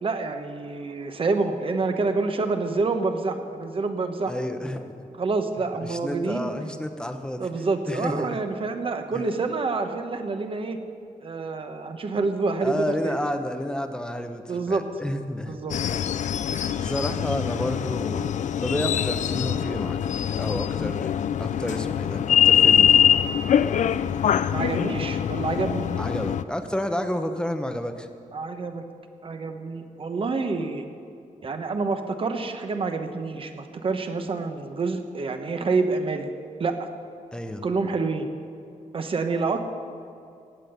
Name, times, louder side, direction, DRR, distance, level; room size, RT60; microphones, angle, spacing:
voice 1, 0.0-4.3 5.2-6.5 7.4-10.8 11.2-13.2 14.5-14.8 15.5-15.8 24.5-25.9 28.3-28.8 29.2-30.8 31.4-36.3 36.6-36.9 37.6-38.3 38.9-39.6, right 3 dB, 40° right, 6 dB, 1.1 m, -27 dB
voice 2, 4.3-5.1 5.8-7.5 7.9-8.4 9.1-9.3 12.6-15.6 16.8-18.3 18.6-23.1 26.0-28.1 37.3-37.6, left 1 dB, 5° left, 6 dB, 0.9 m, -30 dB
sound 1, 15.7-26.4, left 9 dB, 65° left, 0.4 m, -23 dB
17.5 x 7.7 x 6.8 m, 2.5 s
wide cardioid pair, 120°, 14 cm